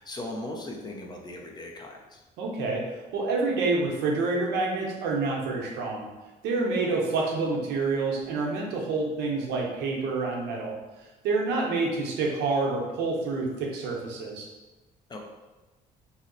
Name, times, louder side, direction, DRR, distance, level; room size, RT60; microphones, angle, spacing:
voice 1, 0.0-2.2 15.1-15.2, left 1 dB, 25° left, 0 dB, 0.5 m, -38 dB
voice 2, 2.4-2.8 3.1-6.1 6.4-10.7 11.2-14.5, right 3 dB, 85° right, -1 dB, 0.8 m, -27 dB
2.8 x 2.0 x 3.8 m, 1.1 s
cardioid pair, 110°, 17 cm